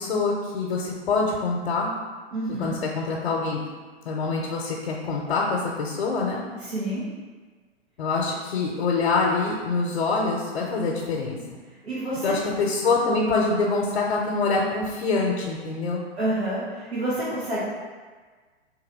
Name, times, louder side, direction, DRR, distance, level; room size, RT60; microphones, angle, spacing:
voice 1, 0.0-1.9 2.6-3.6 4.0-6.4 8.0-11.4 12.2-16.0, left 3 dB, 70° left, -2 dB, 0.7 m, -25 dB
voice 2, 2.3-2.8 6.6-7.0 11.8-12.4 16.2-17.6, right 1 dB, 85° right, -11 dB, 1.4 m, -28 dB
3.1 x 2.9 x 4.0 m, 1.4 s
hypercardioid pair, 120°, 32 cm